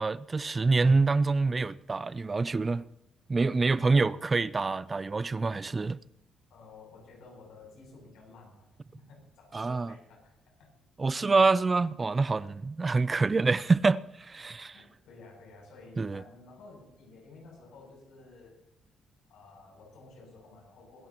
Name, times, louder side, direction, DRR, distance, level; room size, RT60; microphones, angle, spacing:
voice 1, 0.0-2.9 3.3-6.0 9.5-9.9 11.0-14.8 16.0-16.2, right 3 dB, 30° right, 0.5 m, -26 dB
voice 2, 3.9-4.2 6.5-10.7 14.7-18.6 19.3-21.1, left 3 dB, 85° left, 7.8 m, -53 dB
23.0 x 15.0 x 3.0 m
cardioid pair, 90°, 0 cm